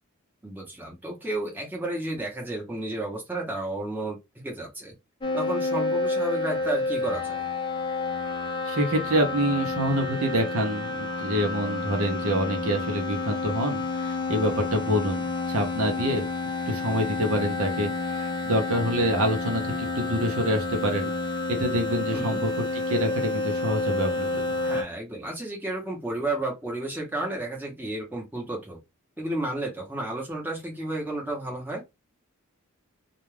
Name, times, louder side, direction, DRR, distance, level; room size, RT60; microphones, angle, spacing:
voice 1, 0.4-4.9 5.3-7.4 22.1-22.4 24.6-28.8 29.2-31.8, right 1 dB, 10° right, 0.8 m, -32 dB
sound 1, 5.2-24.8, left 3 dB, 20° left, 0.5 m, -29 dB
voice 2, 8.7-16.3 16.7-21.1 21.5-24.5, equal, 75° right, 0.7 m, -27 dB
2.4 x 2.2 x 3.1 m
head